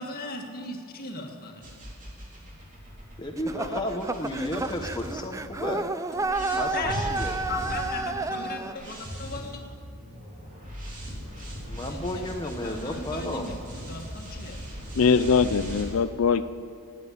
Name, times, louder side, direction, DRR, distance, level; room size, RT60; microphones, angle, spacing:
voice 1, 0.0-1.6 6.7-6.9 7.2-9.6 11.9-12.0 12.6-14.6, left 3 dB, 40° left, 2 dB, 1.8 m, -37 dB
sound 1, 1.6-5.7 6.1-15.8, equal, 35° right, 3.5 m, -38 dB
voice 2, 3.2-5.9 6.5-7.3 11.7-13.5, left 1 dB, 20° left, 2 dB, 1.0 m, -33 dB
sound 2, 3.4-8.7, right 3 dB, 15° right, 0.4 m, -31 dB
voice 3, 15.0-16.4, left 5 dB, 70° left, 13 dB, 0.5 m, -21 dB
16.0 x 9.4 x 8.4 m, 2.2 s
head